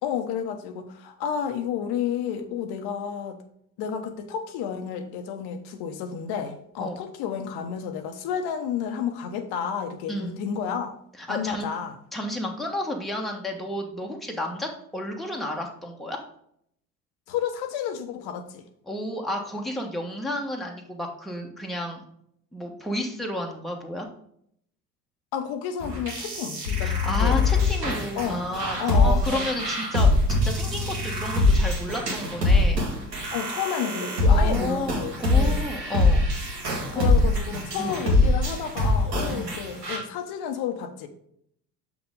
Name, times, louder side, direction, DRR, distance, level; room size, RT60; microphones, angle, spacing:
voice 1, 0.0-3.4 3.8-10.9 11.3-11.9 17.3-18.6 25.3-27.4 28.2-28.4 28.8-29.5 33.3-35.6 36.9-41.1, left 8 dB, 50° left, 8 dB, 1.1 m, -31 dB
voice 2, 10.1-10.4 11.2-11.7 12.1-16.2 18.9-22.0 22.5-24.1 26.8-32.9 34.3-36.3 36.9-37.1 37.8-38.0 39.3-39.5, left 1 dB, ahead, 0 dB, 1.3 m, -32 dB
sound 1, 25.8-40.0, left 2 dB, 85° right, 2.1 m, -23 dB
7.1 x 6.1 x 3.7 m, 0.70 s
figure-of-eight pair, 65°, 48 cm